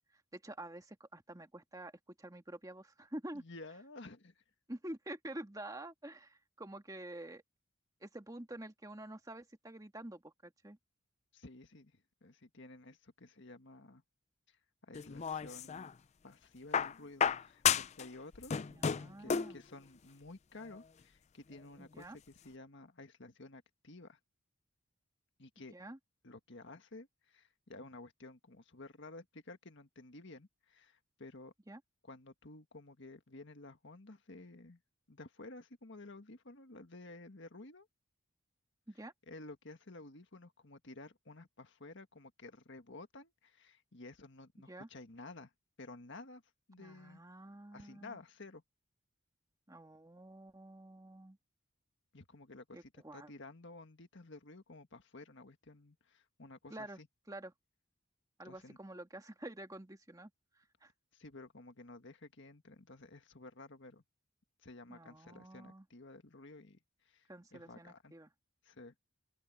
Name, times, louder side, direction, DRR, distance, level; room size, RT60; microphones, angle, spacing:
voice 1, 0.3-1.9 2.2-3.4 4.7-7.4 8.0-10.8 18.7-19.6 21.8-22.2 25.7-26.0 31.7-31.8 38.9-39.1 44.7-44.9 46.8-48.2 49.7-51.4 52.7-53.3 56.7-57.0 57.3-57.5 58.4-60.3 60.5-60.9 64.9-65.8 67.3-68.3, right 1 dB, 15° right, 1.7 m, -48 dB
voice 2, 3.3-4.4 11.3-14.0 14.5-15.9 16.2-18.6 19.2-24.2 25.4-25.7 26.2-31.5 32.0-34.8 35.1-37.9 39.3-45.5 45.8-46.4 46.7-47.2 47.7-48.6 52.1-57.1 58.4-58.8 61.1-64.0 64.6-68.1 68.6-68.9, left 2 dB, 60° left, 1.7 m, -53 dB
sound 1, 14.9-15.9 16.7-18.1 18.3-19.6 20.7-20.8, left 7 dB, 30° left, 0.4 m, -32 dB
open air
head